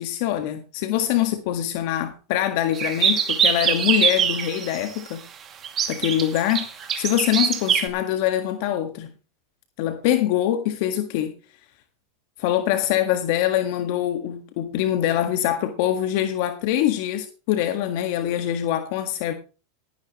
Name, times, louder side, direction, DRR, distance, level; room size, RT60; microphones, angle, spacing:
voice 1, 0.0-5.2 5.9-9.1 9.8-11.3 12.4-19.3, left 12 dB, 60° left, 1.6 m, -24 dB
sound 1, 2.7-4.9 5.6-7.9, right 7 dB, 30° right, 2.4 m, -23 dB
17.5 x 11.0 x 3.1 m
supercardioid pair, 120°, 0 cm